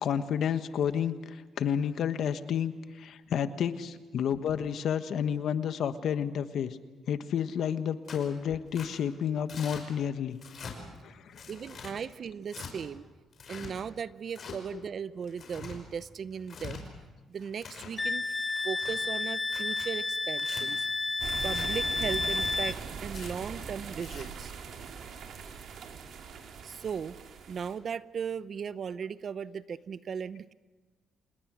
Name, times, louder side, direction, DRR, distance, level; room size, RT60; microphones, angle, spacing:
voice 1, 0.0-6.8 7.1-10.4 11.0-11.4 14.7-14.8, left 8 dB, 70° left, 10 dB, 1.3 m, -30 dB
Tearing, 8.1-8.3 8.7-8.9 9.5-9.8 10.4-10.8 11.3-11.9 12.5-12.7 13.3-13.7 14.3-14.6 15.2-15.8 16.4-16.8 17.4-17.9 18.5-19.0 19.4-19.9 20.4-20.6 21.4-21.7 22.2-22.5 23.1-23.3 23.9-24.2, left 6 dB, 50° left, 5.5 m, -44 dB
voice 2, 11.5-13.1 13.5-16.8 17.3-18.3 18.6-20.9 21.4-24.5 26.6-27.2 27.5-30.5, right 7 dB, 50° right, 16 dB, 0.7 m, -37 dB
Wind instrument woodwind instrument, 18.0-22.8, left 3 dB, 25° left, 0.6 m, -31 dB
sound 1, 21.2-27.7, right 6 dB, 70° right, 2.9 m, -41 dB
28.0 x 20.5 x 6.3 m, 1.3 s
cardioid pair, 90°, 0 cm